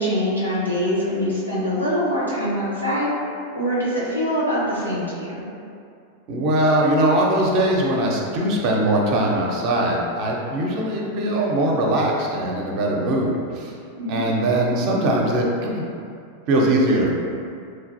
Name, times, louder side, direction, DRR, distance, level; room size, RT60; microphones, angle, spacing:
voice 1, 0.0-5.4 14.0-14.3, equal, 90° left, -8 dB, 0.9 m, -24 dB
voice 2, 6.3-13.7 14.1-15.9 16.5-17.1, right 1 dB, 45° right, -1 dB, 0.5 m, -21 dB
3.1 x 2.5 x 2.6 m, 2.4 s
figure-of-eight pair, 90°, 0 cm